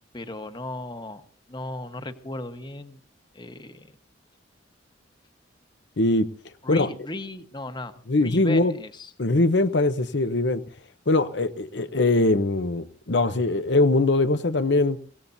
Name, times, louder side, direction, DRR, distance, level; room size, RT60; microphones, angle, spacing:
voice 1, 0.1-1.2 1.5-3.0 3.3-3.9 6.6-9.1, left 2 dB, 25° left, 1.2 m, -36 dB
voice 2, 6.0-6.3 6.7-6.9 8.1-8.7 9.2-10.6 11.1-15.0, left 2 dB, 65° left, 0.8 m, -21 dB
24.5 x 17.5 x 2.7 m
head